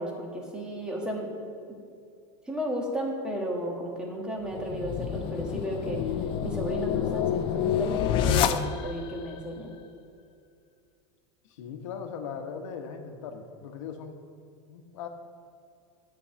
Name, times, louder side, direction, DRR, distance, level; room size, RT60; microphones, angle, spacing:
voice 1, 0.0-1.3 2.5-6.0 6.4-9.8, equal, 5° right, -1 dB, 1.5 m, -33 dB
sound 1, 4.5-9.1, left 9 dB, 30° left, 0.4 m, -28 dB
voice 2, 11.4-14.2 14.7-15.1, left 6 dB, 70° left, 6 dB, 1.2 m, -39 dB
9.9 x 4.7 x 7.5 m, 2.4 s
supercardioid pair, 150°, 17 cm